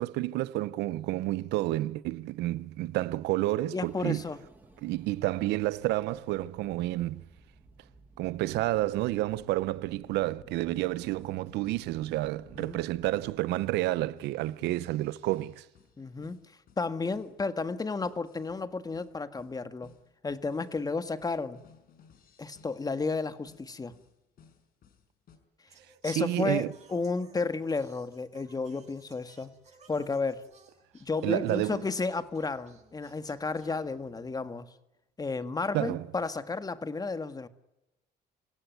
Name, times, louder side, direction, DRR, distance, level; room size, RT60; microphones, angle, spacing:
voice 1, 0.0-4.2 4.8-7.3 8.2-15.7 26.0-26.7 31.2-31.8 35.7-36.0, right 16 dB, 85° right, 0.9 m, -30 dB
voice 2, 3.7-4.4 12.6-12.8 16.0-16.4 16.8-19.9 20.2-21.6 22.4-23.9 26.0-29.5 29.9-30.4 31.0-34.7 35.2-37.5, left 4 dB, 20° left, 1.8 m, -32 dB
sound 1, 3.8-13.3, right 2 dB, 10° right, 7.7 m, -56 dB
sound 2, 10.7-25.4, left 7 dB, 60° left, 5.2 m, -60 dB
Singing, 25.7-34.4, right 4 dB, 40° right, 7.8 m, -60 dB
27.0 x 16.5 x 9.3 m
cardioid pair, 110°, 17 cm